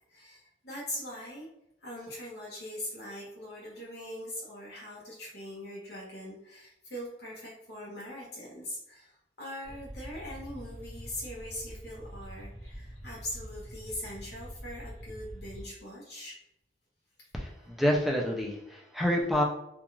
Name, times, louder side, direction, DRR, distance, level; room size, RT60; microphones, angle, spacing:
voice 1, 0.1-1.5 1.8-16.4 17.2-17.3, left 1 dB, 65° left, -5 dB, 0.7 m, -41 dB
sound 1, 9.6-15.6, equal, 35° left, 1.2 m, -45 dB
voice 2, 17.3-19.4, equal, ahead, -1 dB, 0.4 m, -28 dB
2.4 x 2.3 x 3.0 m, 0.84 s
head